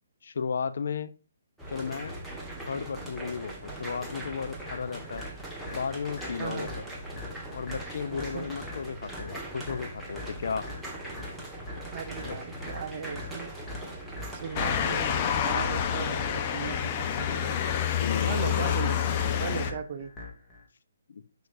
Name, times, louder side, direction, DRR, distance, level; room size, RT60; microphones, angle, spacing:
voice 1, 0.2-1.1 1.7-2.2 2.7-5.3 5.7-6.7 7.5-10.7 12.3-12.4 18.0-18.7 21.1-21.2, left 6 dB, 65° left, 0.7 m, -34 dB
sound 1, 1.6-15.3, right 1 dB, ahead, 1.5 m, -40 dB
sound 2, 4.7-20.7, left 3 dB, 15° left, 2.2 m, -44 dB
voice 2, 6.4-6.8 8.1-8.5 11.9-13.5 14.3-17.6 18.3-19.0 19.4-20.1, right 7 dB, 45° right, 0.8 m, -37 dB
Motor vehicle (road) / Siren, 14.6-19.7, left 8 dB, 30° left, 0.9 m, -28 dB
6.8 x 6.2 x 2.6 m
hypercardioid pair, 145°, 0 cm